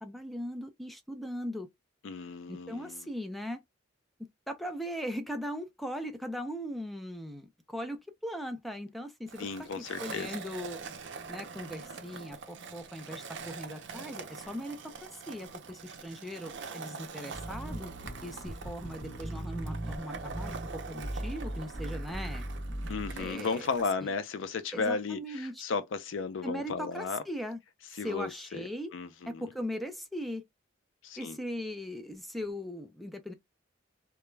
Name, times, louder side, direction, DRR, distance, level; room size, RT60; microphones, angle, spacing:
voice 1, 0.0-1.7 2.5-3.6 4.5-10.8 11.3-17.9 18.2-22.5 23.2-23.7 24.0-24.1 24.7-25.6 26.4-27.6 28.0-28.9 29.3-30.4 31.2-33.3, equal, ahead, 0.4 m, -39 dB
voice 2, 2.0-3.1 9.4-10.3 22.9-27.2 28.0-28.3 28.6-28.7 28.9-29.4 31.0-31.4, left 4 dB, 85° left, 0.4 m, -34 dB
Skateboard, 9.3-23.9, right 5 dB, 65° right, 0.5 m, -44 dB
sound 1, 17.3-23.3, right 1 dB, 55° left, 1.1 m, -39 dB
2.2 x 2.1 x 3.1 m
head